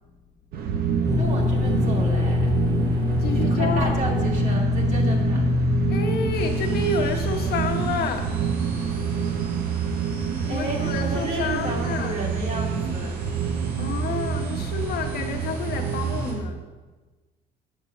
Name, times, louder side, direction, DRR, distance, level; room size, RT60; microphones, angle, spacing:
sound 1, 0.5-16.4, right 7 dB, 65° right, 0.9 m, -27 dB
sound 2, 1.0-8.8, left 5 dB, 15° left, 0.5 m, -26 dB
voice 1, 1.1-2.5 3.3-5.4 10.5-13.2, right 1 dB, 45° right, -1 dB, 2.5 m, -32 dB
voice 2, 3.2-3.9 5.9-8.4 10.2-12.2 13.8-16.6, left 5 dB, 70° left, 4 dB, 1.1 m, -29 dB
sound 3, 6.3-16.3, right 2 dB, 85° right, 2.6 m, -42 dB
8.1 x 5.4 x 7.0 m, 1.3 s
cardioid pair, 110°, 17 cm